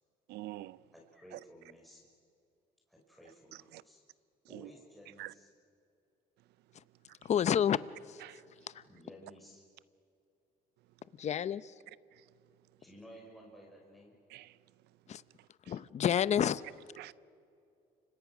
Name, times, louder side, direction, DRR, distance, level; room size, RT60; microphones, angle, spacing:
voice 1, 0.3-0.8 1.3-1.4 3.5-3.8 4.5-4.7 5.2-5.3 8.2-8.4 12.1-12.2 14.3-14.6 15.4-15.8 17.0-17.1, right 17 dB, 80° right, 0.6 m, -47 dB
voice 2, 0.9-2.1 2.9-4.0 4.5-5.5 8.9-9.6 12.8-14.2, equal, ahead, 5.6 m, -55 dB
voice 3, 7.2-7.8 8.1-8.2 11.2-11.7 15.1-15.2 15.7-16.6, left 9 dB, 40° left, 0.7 m, -29 dB
30.0 x 26.0 x 6.2 m
cardioid pair, 110°, 17 cm